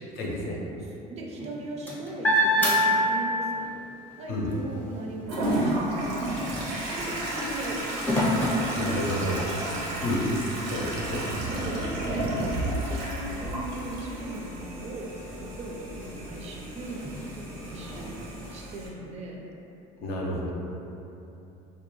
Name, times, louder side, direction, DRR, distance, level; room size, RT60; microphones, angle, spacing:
voice 1, 0.2-0.6 4.3-4.5 8.7-9.4 10.0-10.2 10.6-11.3 20.0-20.5, left 1 dB, 65° left, -3 dB, 0.6 m, -30 dB
voice 2, 0.8-3.7 4.2-8.8 9.7-10.0 11.3-12.5 12.8-15.1 15.4-18.1 18.5-19.4, right 2 dB, 40° right, -1 dB, 0.4 m, -39 dB
sound 1, 1.3-3.7 4.1-9.5 10.2-10.3 10.6-18.6, equal, 10° left, 0.5 m, -30 dB
Toilet flush, 5.3-18.9, right 1 dB, 85° right, 0.6 m, -32 dB
2.3 x 2.3 x 2.9 m, 2.9 s
supercardioid pair, 115°, 18 cm